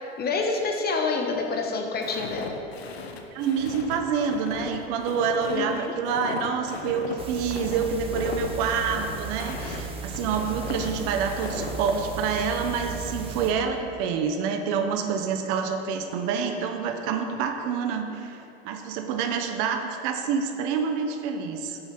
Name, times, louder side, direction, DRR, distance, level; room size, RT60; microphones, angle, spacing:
voice 1, 0.2-2.6 5.5-5.9, left 4 dB, 30° left, 2 dB, 1.2 m, -27 dB
Walk footsteps, 2.0-12.0, left 5 dB, 90° left, 0.8 m, -37 dB
voice 2, 3.3-21.8, right 6 dB, 60° right, 5 dB, 0.9 m, -27 dB
sound 1, 7.2-13.5, right 5 dB, 20° right, 1.1 m, -36 dB
7.9 x 5.6 x 5.9 m, 2.9 s
hypercardioid pair, 90°, 30 cm